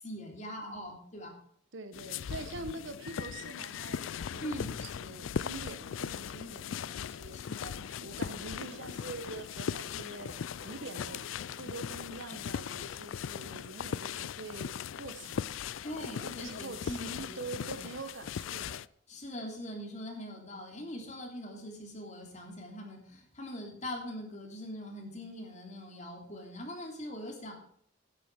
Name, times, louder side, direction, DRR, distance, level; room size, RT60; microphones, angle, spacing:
voice 1, 0.0-1.3 4.4-4.7 7.3-7.8 15.8-17.9 19.1-27.5, equal, 40° left, 1 dB, 3.3 m, -42 dB
voice 2, 1.7-7.4 8.0-10.3 10.6-11.3 11.6-15.5 16.2-18.9, right 3 dB, 75° right, 10 dB, 1.2 m, -45 dB
sound 1, 1.9-18.9, left 8 dB, 85° left, 0.4 m, -39 dB
Run, 8.0-13.1, left 2 dB, 65° left, 2.0 m, -54 dB
12.0 x 10.5 x 4.8 m, 0.65 s
head